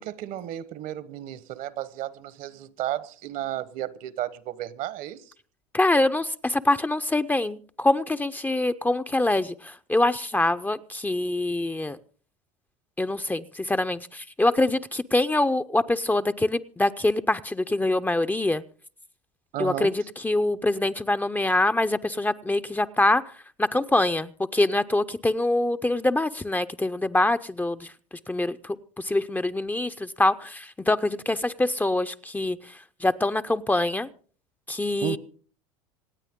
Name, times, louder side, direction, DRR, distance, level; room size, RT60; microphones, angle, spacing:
voice 1, 0.0-5.3 19.5-19.9 35.0-35.2, right 13 dB, 55° right, 1.1 m, -33 dB
voice 2, 5.7-12.0 13.0-18.6 19.6-23.3 23.6-27.9 28.3-34.1 34.7-35.2, left 2 dB, 10° left, 0.6 m, -24 dB
27.0 x 9.0 x 3.7 m
hypercardioid pair, 85°, 17 cm